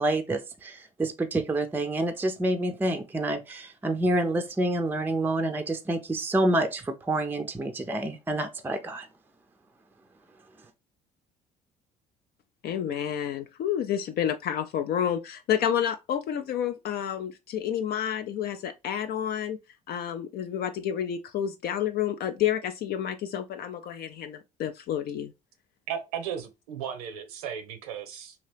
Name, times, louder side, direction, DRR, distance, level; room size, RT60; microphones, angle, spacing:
voice 1, 0.0-9.1, right 1 dB, 10° right, 0.4 m, -28 dB
voice 2, 12.6-19.6 19.9-25.3, left 9 dB, 55° left, 0.4 m, -29 dB
voice 3, 25.9-28.3, right 8 dB, 85° right, 0.7 m, -35 dB
2.8 x 2.8 x 3.2 m
hypercardioid pair, 65°, 19 cm